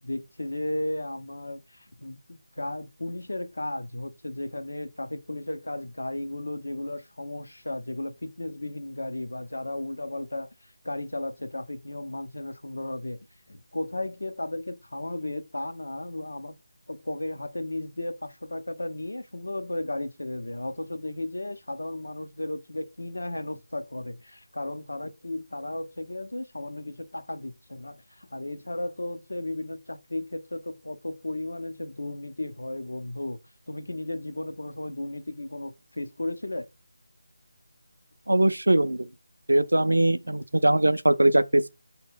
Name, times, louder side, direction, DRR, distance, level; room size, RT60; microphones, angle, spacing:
voice 1, 0.0-13.2 13.5-16.5 16.9-33.4 33.7-36.7, left 1 dB, 75° left, 0.5 m, -34 dB
voice 2, 38.3-39.1 39.5-41.7, right 1 dB, 80° right, 0.3 m, -21 dB
4.3 x 2.1 x 3.6 m
figure-of-eight pair, 160°, 0 cm